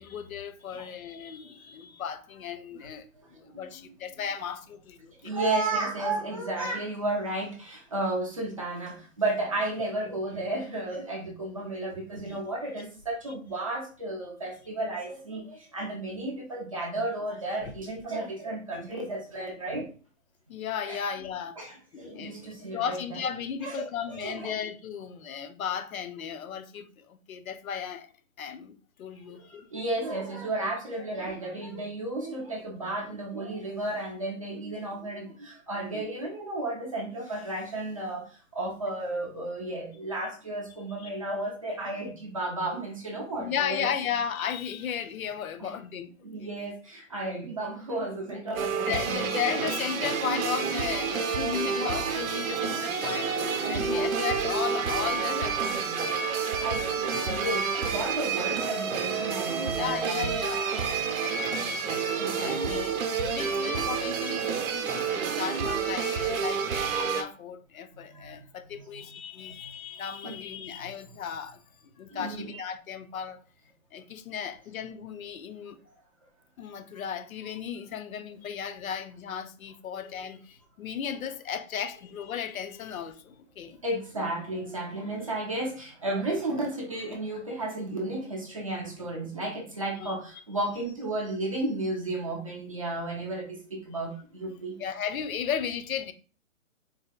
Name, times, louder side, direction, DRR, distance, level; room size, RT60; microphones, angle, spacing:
voice 1, 0.0-5.3 9.8-9.9 12.3-12.4 17.6-17.7 20.5-21.6 21.9-28.1 28.4-29.7 41.0-41.1 43.4-46.1 46.4-46.5 48.8-57.6 59.7-61.8 62.4-71.6 72.0-73.4 73.9-75.8 76.6-83.8 90.0-90.1 94.8-96.1, left 8 dB, 85° left, 0.6 m, -35 dB
voice 2, 3.4-3.9 5.2-19.9 20.9-21.0 21.6-23.2 23.6-24.5 29.2-43.9 45.6-45.7 46.2-49.3 53.6-54.1 56.6-60.3 62.2-62.9 67.9-68.3 68.7-68.8 70.2-70.3 72.1-72.6 83.8-94.8, right 2 dB, 25° right, 0.5 m, -33 dB
sound 1, 48.5-67.2, right 6 dB, 90° right, 0.7 m, -29 dB
sound 2, 49.5-55.2, left 4 dB, 25° left, 0.7 m, -42 dB
3.9 x 2.6 x 2.2 m
hypercardioid pair, 165°, 41 cm